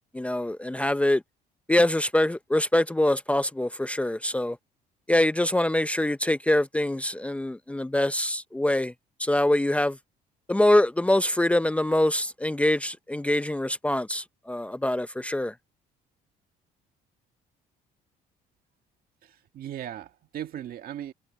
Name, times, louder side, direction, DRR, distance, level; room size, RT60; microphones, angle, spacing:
voice 1, 0.1-1.2 1.7-4.6 5.1-8.9 9.2-10.0 10.5-15.5, left 1 dB, 10° left, 0.7 m, -24 dB
voice 2, 19.2-21.1, right 11 dB, 60° right, 2.1 m, -38 dB
cardioid pair, 110°, 17 cm